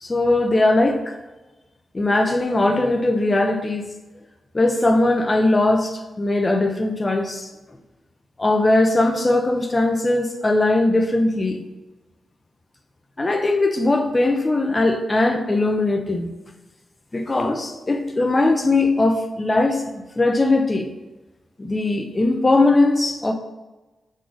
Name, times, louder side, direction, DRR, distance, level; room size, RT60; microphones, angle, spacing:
voice 1, 0.0-1.2 1.9-3.8 4.5-7.5 8.4-11.7 13.2-16.3 17.1-20.9 21.6-23.3, left 2 dB, 25° left, 5 dB, 0.7 m, -20 dB
6.3 x 4.0 x 3.8 m, 1.1 s
cardioid pair, 75°, 0 cm